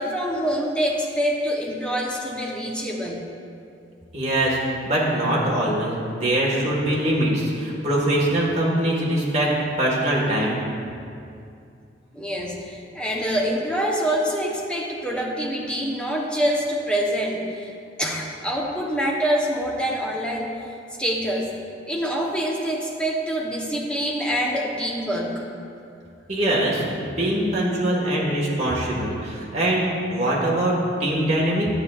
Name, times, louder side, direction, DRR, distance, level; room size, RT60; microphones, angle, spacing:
voice 1, 0.0-3.2 12.1-17.7 18.0-20.5 21.0-21.5 21.9-25.4, equal, 5° left, -2 dB, 0.8 m, -25 dB
voice 2, 4.1-4.6 4.8-10.6 26.3-31.7, right 1 dB, 40° right, -4 dB, 1.4 m, -23 dB
10.5 x 7.3 x 2.4 m, 2.5 s
head